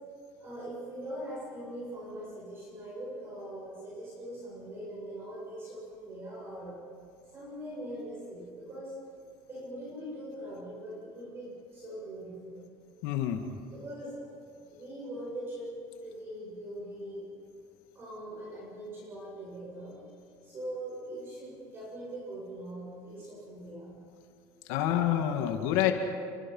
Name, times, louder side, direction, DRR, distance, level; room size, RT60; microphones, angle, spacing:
voice 1, 0.4-6.8 7.3-8.9 9.5-12.6 13.7-14.3 14.6-15.7 16.0-17.2 17.9-20.0 20.4-23.9, right 1 dB, 25° right, -6 dB, 7.6 m, -41 dB
voice 2, 13.0-13.4 24.7-25.9, left 11 dB, 85° left, 4 dB, 2.2 m, -27 dB
29.5 x 24.0 x 5.7 m, 2.3 s
cardioid pair, 170°, 9 cm